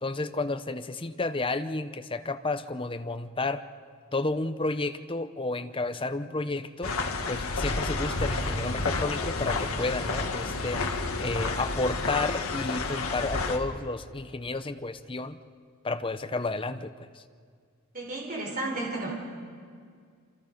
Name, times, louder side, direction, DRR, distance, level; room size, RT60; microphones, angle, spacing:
voice 1, 0.0-3.6 4.1-6.9 7.3-10.8 11.2-15.4 15.8-17.1, left 2 dB, 25° left, 9 dB, 0.8 m, -31 dB
sound 1, 6.8-13.6, left 3 dB, 70° left, 1.9 m, -30 dB
voice 2, 17.9-19.1, right 2 dB, 40° right, -1 dB, 4.0 m, -32 dB
27.5 x 27.0 x 5.3 m, 2.1 s
head